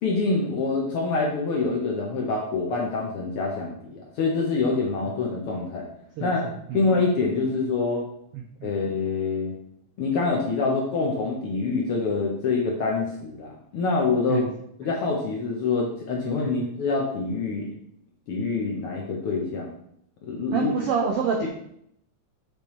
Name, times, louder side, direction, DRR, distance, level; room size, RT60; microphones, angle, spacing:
voice 1, 0.0-5.9 6.2-6.4 6.7-8.1 8.6-9.5 10.0-14.5 14.8-17.7 18.3-19.8 20.3-20.7 21.4-21.5, left 4 dB, 70° left, -1 dB, 1.4 m, -26 dB
voice 2, 6.2-6.8 8.3-8.7 14.3-14.4 16.4-16.5 20.5-21.5, right 6 dB, 85° right, 1 dB, 1.3 m, -27 dB
6.9 x 5.3 x 3.1 m, 0.71 s
omnidirectional pair, 3.5 m